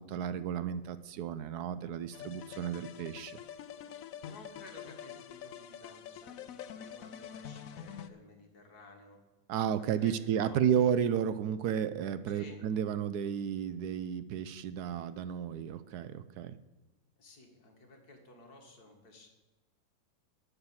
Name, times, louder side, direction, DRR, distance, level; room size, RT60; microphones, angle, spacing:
voice 1, 0.0-3.4 9.5-16.5, right 8 dB, 70° right, 13 dB, 0.9 m, -32 dB
sound 1, 2.1-8.1, left 9 dB, 70° left, 0.8 m, -46 dB
voice 2, 3.7-9.2 9.9-10.6 12.3-12.6 17.2-19.3, left 2 dB, 50° left, 2 dB, 2.2 m, -55 dB
11.5 x 6.8 x 7.1 m, 1.1 s
omnidirectional pair, 2.1 m